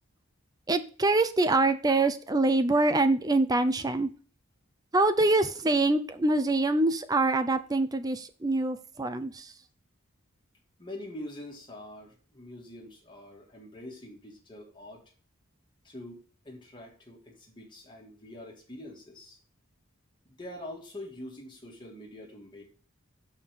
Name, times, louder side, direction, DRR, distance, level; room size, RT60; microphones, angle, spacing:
voice 1, 0.7-4.1 4.9-9.5, right 2 dB, 15° right, 10 dB, 0.5 m, -25 dB
voice 2, 10.8-15.0 15.8-16.2 16.4-19.4 20.2-22.6, left 1 dB, 20° left, -2 dB, 2.2 m, -44 dB
5.9 x 4.9 x 5.3 m, 0.40 s
head